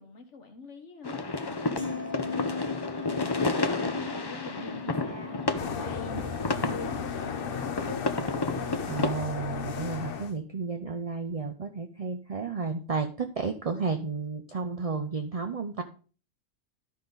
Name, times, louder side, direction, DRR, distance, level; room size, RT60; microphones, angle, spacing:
voice 1, 0.0-7.7, left 3 dB, 85° left, 1.8 m, -44 dB
sound 1, 1.0-9.1, left 3 dB, 30° left, 0.5 m, -31 dB
sound 2, 1.8-8.0 8.4-8.7, left 4 dB, 10° left, 1.8 m, -40 dB
sound 3, 5.6-10.3, left 6 dB, 55° left, 0.9 m, -35 dB
voice 2, 8.9-15.8, right 4 dB, 40° right, 0.6 m, -32 dB
12.5 x 5.2 x 3.9 m
omnidirectional pair, 1.2 m